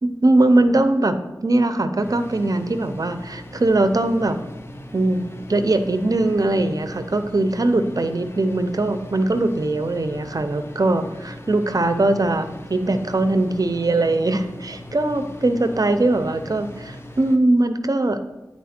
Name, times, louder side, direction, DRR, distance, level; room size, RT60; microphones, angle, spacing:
voice 1, 0.0-4.4 4.9-18.2, right 2 dB, 55° right, 9 dB, 0.6 m, -21 dB
sound 1, 2.0-17.4, left 1 dB, 35° left, 0.7 m, -39 dB
10.5 x 4.4 x 4.3 m, 1.0 s
wide cardioid pair, 55°, 7 cm